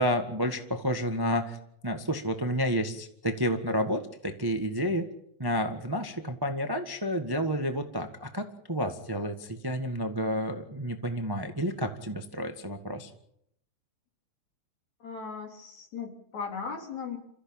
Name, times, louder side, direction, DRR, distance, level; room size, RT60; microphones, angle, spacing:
voice 1, 0.0-1.6 1.8-5.1 5.4-13.1, equal, 15° right, 6 dB, 0.8 m, -30 dB
voice 2, 15.0-17.2, left 5 dB, 70° left, 2 dB, 5.0 m, -37 dB
28.0 x 15.0 x 8.8 m, 0.76 s
omnidirectional pair, 3.3 m